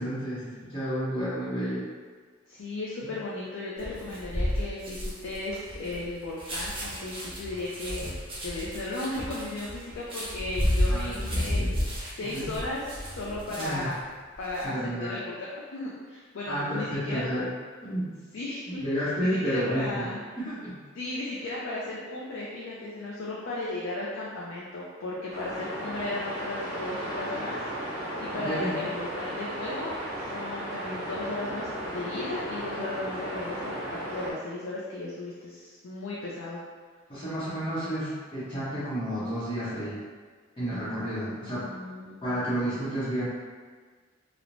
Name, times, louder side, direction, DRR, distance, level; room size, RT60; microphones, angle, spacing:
voice 1, 0.0-1.9 10.9-11.7 12.2-12.5 13.5-13.9 14.6-15.2 16.5-17.5 17.8-18.1 18.8-20.1 20.4-20.8 28.3-28.7 37.1-40.0 40.6-41.7 42.2-43.3, equal, 25° left, -14 dB, 0.7 m, -31 dB
voice 2, 2.5-8.1 8.4-11.9 12.2-12.8 13.1-14.0 14.4-17.2 18.3-20.2 20.9-30.0 30.3-36.6 41.4-42.2, left 2 dB, 70° left, -6 dB, 0.4 m, -35 dB
sound 1, 3.8-13.9 14.3-14.6, left 1 dB, 30° right, 0.7 m, -31 dB
sound 2, 25.3-34.3, equal, 70° right, 0.8 m, -35 dB
3.0 x 2.0 x 2.5 m, 1.5 s
head